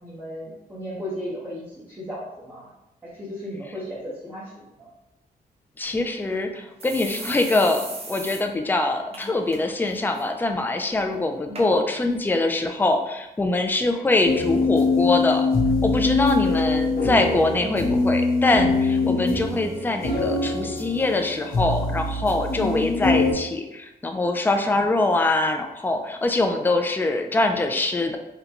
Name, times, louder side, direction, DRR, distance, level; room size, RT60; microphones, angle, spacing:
voice 1, 0.0-2.7 3.0-4.9 9.1-9.3 11.4-11.7, equal, 15° right, -8 dB, 0.9 m, -36 dB
voice 2, 5.8-15.5 15.8-28.2, left 2 dB, 10° left, 5 dB, 0.3 m, -23 dB
sound 1, 5.9-6.0 6.3-6.4 6.8-8.4 8.7-8.8 9.1-9.6 9.9-10.2 10.9-11.0 11.5-11.7 12.4-12.5, right 2 dB, 40° right, 0.6 m, -37 dB
sound 2, 14.2-23.3, left 3 dB, 70° left, 0.8 m, -23 dB
3.8 x 2.2 x 2.8 m, 0.94 s
cardioid pair, 100°, 16 cm